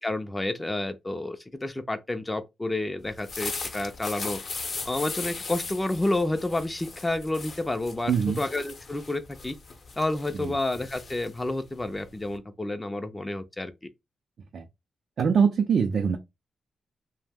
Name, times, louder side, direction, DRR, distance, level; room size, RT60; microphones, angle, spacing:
voice 1, 0.0-4.4 4.9-9.6 10.0-13.7, left 2 dB, 15° left, 0.4 m, -30 dB
sound 1, 3.1-12.4, left 4 dB, 50° left, 0.6 m, -38 dB
voice 2, 8.1-8.4 10.3-10.6 14.5-14.7 15.2-16.2, right 6 dB, 65° right, 0.4 m, -23 dB
2.5 x 2.0 x 3.4 m
cardioid pair, 85°, 0 cm